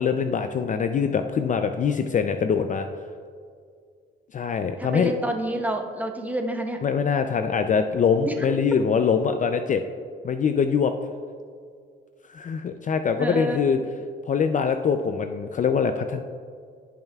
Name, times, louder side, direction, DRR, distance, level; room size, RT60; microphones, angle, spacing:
voice 1, 0.0-2.9 4.3-5.1 6.8-9.8 10.2-10.9 12.3-13.8 14.3-16.2, left 6 dB, 40° left, 8 dB, 0.4 m, -23 dB
voice 2, 4.8-6.8 8.2-8.5 13.2-13.6, right 1 dB, 10° right, 3 dB, 1.0 m, -28 dB
16.0 x 5.5 x 2.3 m, 2.1 s
cardioid pair, 90°, 20 cm